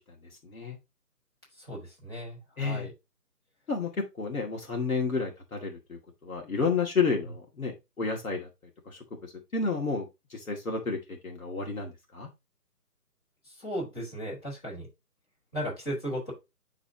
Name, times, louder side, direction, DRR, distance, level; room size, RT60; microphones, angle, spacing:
voice 1, 0.4-0.8 2.6-2.9 3.7-8.5 8.9-11.0 11.2-12.3, left 4 dB, 60° left, 1 dB, 2.3 m, -31 dB
voice 2, 1.6-2.9 13.4-14.9 15.5-16.3, equal, 15° left, -7 dB, 4.4 m, -36 dB
11.0 x 4.1 x 2.9 m, 0.23 s
hypercardioid pair, 175°, 48 cm